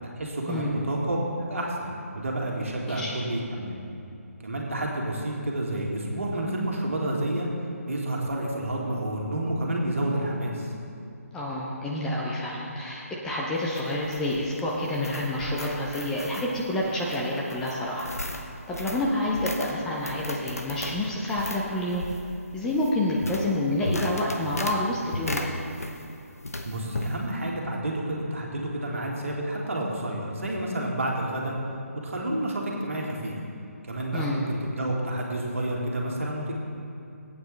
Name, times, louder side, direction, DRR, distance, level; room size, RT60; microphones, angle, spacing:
voice 1, 0.0-3.8 4.4-7.5 7.9-10.7 26.6-31.5 32.0-33.4 33.8-36.5, right 1 dB, 60° right, -2 dB, 2.0 m, -29 dB
voice 2, 11.3-18.1 18.7-22.0 22.5-25.5 34.1-34.4, left 1 dB, 5° left, -4 dB, 0.7 m, -28 dB
sound 1, 13.5-26.2 26.4-27.1, left 1 dB, 70° left, 1.1 m, -36 dB
18.0 x 8.7 x 3.3 m, 2.7 s
figure-of-eight pair, 145°, 8 cm